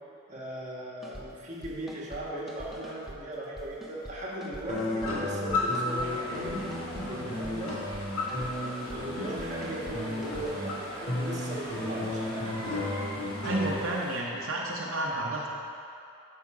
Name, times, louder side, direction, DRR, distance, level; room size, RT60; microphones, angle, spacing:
voice 1, 0.3-6.6 7.0-7.8 8.2-12.6, right 1 dB, 35° right, -5 dB, 1.4 m, -38 dB
sound 1, 1.0-1.2 1.6-2.2 2.5-3.2 3.6-5.1 5.5-6.1 6.3-7.1 7.4-8.0 8.3-9.0 9.4-10.5, equal, ahead, 0.6 m, -45 dB
sound 2, 4.7-13.7, left 2 dB, 90° left, 1.6 m, -33 dB
sound 3, 5.8-14.2, equal, 20° left, 1.2 m, -43 dB
voice 2, 13.4-15.5, right 1 dB, 75° right, -3 dB, 0.8 m, -31 dB
8.5 x 5.7 x 4.8 m, 2.6 s
head